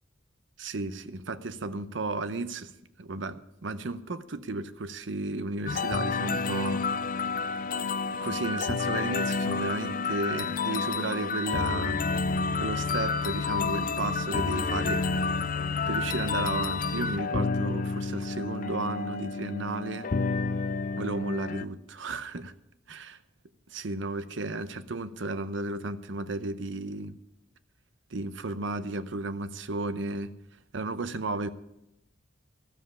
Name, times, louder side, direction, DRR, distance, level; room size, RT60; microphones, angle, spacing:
voice 1, 0.6-2.7 3.0-6.9 8.2-12.1 12.6-15.5 15.9-20.1 21.0-22.5 22.9-23.2 23.7-27.2 28.1-30.3 30.7-31.5, right 2 dB, 65° right, 0.7 m, -34 dB
sound 1, 5.7-21.6, left 4 dB, 45° left, 0.5 m, -29 dB
13.5 x 7.5 x 9.9 m
head